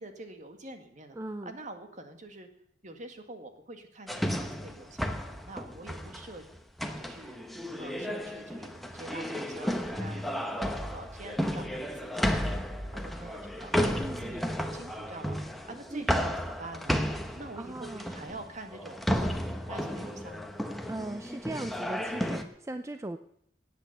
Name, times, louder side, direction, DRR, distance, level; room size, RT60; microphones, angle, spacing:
voice 1, 0.0-1.2 1.4-2.5 2.8-6.4 7.0-7.4 7.8-12.6 12.9-15.4 15.7-17.0 17.3-19.1 19.7-20.5, right 2 dB, 45° right, 6 dB, 1.8 m, -46 dB
voice 2, 1.2-1.5 13.9-14.5 15.9-16.2 17.3-18.1 20.9-23.2, right 2 dB, 15° right, 9 dB, 0.5 m, -39 dB
sound 1, 4.1-22.4, equal, ahead, 1.1 m, -33 dB
18.0 x 8.6 x 6.7 m, 0.67 s
head